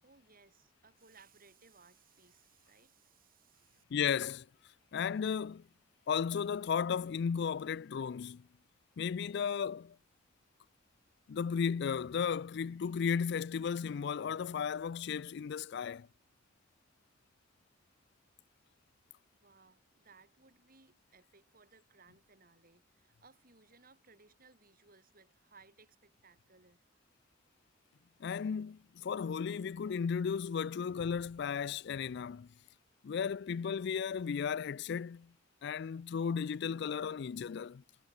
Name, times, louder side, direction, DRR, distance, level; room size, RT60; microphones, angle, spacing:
voice 1, 0.0-3.8 19.3-26.8, right 4 dB, 50° right, 6.7 m, -63 dB
voice 2, 3.9-4.5 4.9-5.6 6.1-8.5 9.0-10.0 11.3-16.1 28.2-32.5 33.0-35.3 35.6-37.8, left 6 dB, 60° left, 0.4 m, -34 dB
head